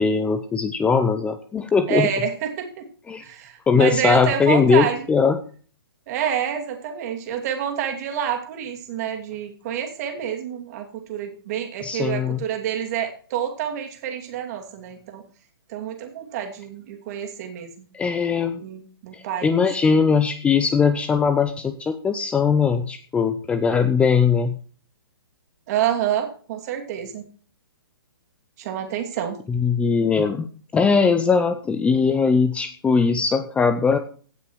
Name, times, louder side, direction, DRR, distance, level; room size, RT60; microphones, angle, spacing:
voice 1, 0.0-2.1 3.1-3.2 3.7-5.4 11.8-12.4 17.9-18.6 19.1-24.6 29.5-30.5 30.7-34.0, left 5 dB, 10° left, 10 dB, 0.6 m, -20 dB
voice 2, 1.9-2.8 3.2-5.0 6.1-15.2 15.7-17.7 18.6-20.0 25.7-27.2 28.6-29.4, right 9 dB, 40° right, 4 dB, 2.7 m, -28 dB
16.5 x 5.9 x 4.7 m, 0.42 s
hypercardioid pair, 140°, 13 cm